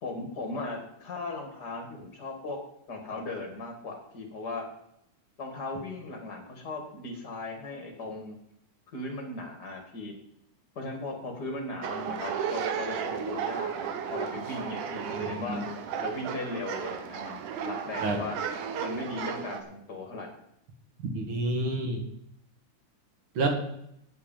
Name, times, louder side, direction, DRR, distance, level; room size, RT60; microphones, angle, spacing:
voice 1, 0.0-2.6 2.9-4.7 5.4-8.4 8.9-10.2 10.8-15.6 16.0-18.4 18.8-20.3, left 2 dB, 35° left, 3 dB, 2.3 m, -37 dB
sound 1, 11.8-19.6, right 7 dB, 75° right, 2.5 m, -34 dB
voice 2, 15.1-15.6 18.0-18.2 21.0-22.0 23.4-23.5, right 2 dB, 45° right, 3 dB, 2.1 m, -29 dB
9.5 x 8.5 x 7.3 m, 0.75 s
omnidirectional pair, 3.7 m